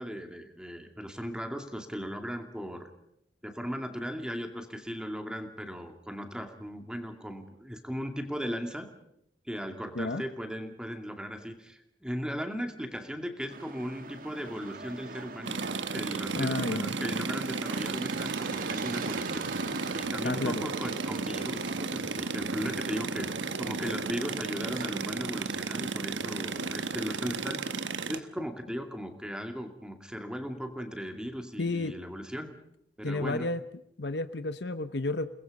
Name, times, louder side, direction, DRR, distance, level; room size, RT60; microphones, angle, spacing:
voice 1, 0.0-2.9 3.4-8.9 9.5-15.6 15.9-19.5 19.9-27.6 28.1-32.5 33.0-33.5, equal, 5° right, 5 dB, 2.4 m, -37 dB
sound 1, 13.5-25.4, right 4 dB, 50° right, 1.4 m, -44 dB
sound 2, 15.5-28.2, right 4 dB, 90° right, 1.3 m, -34 dB
voice 2, 16.4-16.9 20.2-20.6 31.6-31.9 33.0-33.6 34.0-35.3, left 2 dB, 65° left, 11 dB, 1.0 m, -31 dB
29.5 x 20.5 x 5.4 m, 0.75 s
head